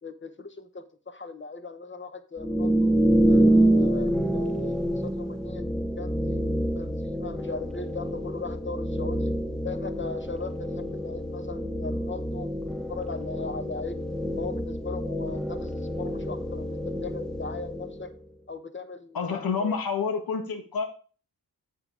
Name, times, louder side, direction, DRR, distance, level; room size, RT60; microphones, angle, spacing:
voice 1, 0.0-2.9 3.2-5.7 6.0-6.4 6.7-9.3 9.6-14.0 14.4-18.1 18.5-19.8, left 4 dB, 30° left, 10 dB, 1.1 m, -38 dB
sound 1, 2.4-18.2, right 1 dB, ahead, 0.7 m, -27 dB
voice 2, 19.1-20.8, left 5 dB, 65° left, 6 dB, 1.5 m, -28 dB
7.9 x 5.4 x 4.9 m, 0.39 s
cardioid pair, 55°, 39 cm